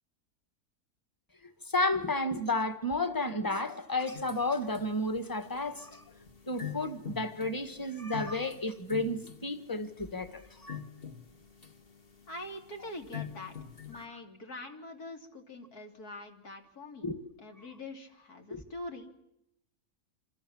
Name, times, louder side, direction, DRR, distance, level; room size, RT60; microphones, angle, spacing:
voice 1, 1.7-6.0 6.5-10.8 17.0-17.2 18.5-18.6, left 2 dB, 15° left, 1.7 m, -32 dB
sound 1, 4.1-14.1, left 8 dB, 40° left, 1.8 m, -46 dB
voice 2, 12.3-13.5 13.9-17.1 17.4-19.1, left 2 dB, 85° left, 3.6 m, -44 dB
27.0 x 26.5 x 7.2 m
omnidirectional pair, 1.6 m